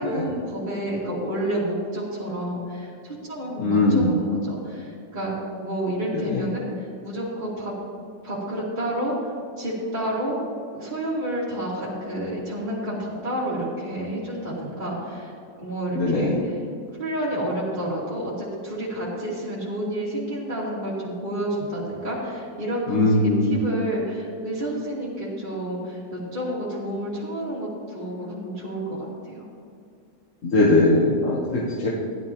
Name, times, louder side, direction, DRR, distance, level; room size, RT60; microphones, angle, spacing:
voice 1, 0.0-5.3 5.6-7.7 8.2-10.4 10.7-15.3 15.6-16.6 17.0-29.4, right 1 dB, 25° right, -9 dB, 2.3 m, -30 dB
voice 2, 3.6-4.1 6.3-6.4 15.9-16.4 22.9-23.5 30.4-31.9, left 2 dB, 50° left, -4 dB, 1.4 m, -20 dB
15.0 x 11.0 x 2.9 m, 2.4 s
omnidirectional pair, 1.8 m